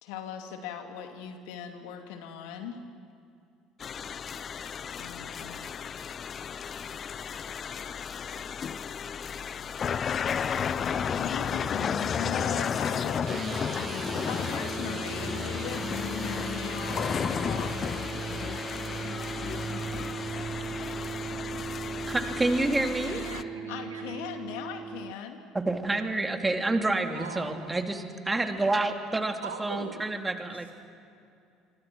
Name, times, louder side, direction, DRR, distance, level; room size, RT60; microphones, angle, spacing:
voice 1, 0.0-2.8 4.9-5.7 10.8-17.8 23.7-25.4, left 7 dB, 70° left, 5 dB, 2.7 m, -39 dB
sound 1, 3.8-23.4, left 7 dB, 40° left, 0.8 m, -33 dB
sound 2, 13.2-25.1, right 6 dB, 35° right, 0.5 m, -37 dB
voice 2, 22.1-23.2 25.5-30.7, right 2 dB, 15° right, 5 dB, 2.7 m, -28 dB
voice 3, 23.0-24.4 27.1-27.7 29.4-30.0, right 5 dB, 85° right, 3 dB, 2.7 m, -41 dB
27.5 x 25.0 x 6.3 m, 2.5 s
hypercardioid pair, 65°, 0 cm